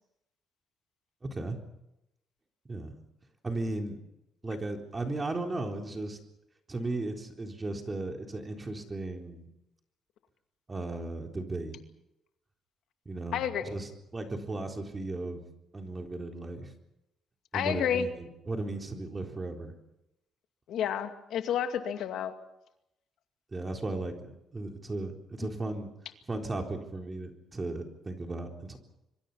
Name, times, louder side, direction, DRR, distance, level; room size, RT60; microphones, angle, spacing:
voice 1, 1.2-1.6 2.7-2.9 3.4-4.0 4.4-6.2 6.7-9.5 10.7-11.8 13.1-15.4 15.7-16.7 17.5-19.7 23.5-25.9 26.3-28.8, right 2 dB, 20° right, 3 dB, 4.0 m, -36 dB
voice 2, 13.3-13.8 17.5-18.1 20.7-22.3, left 9 dB, 75° left, 7 dB, 2.3 m, -30 dB
25.5 x 23.5 x 5.7 m, 0.85 s
cardioid pair, 110°, 0 cm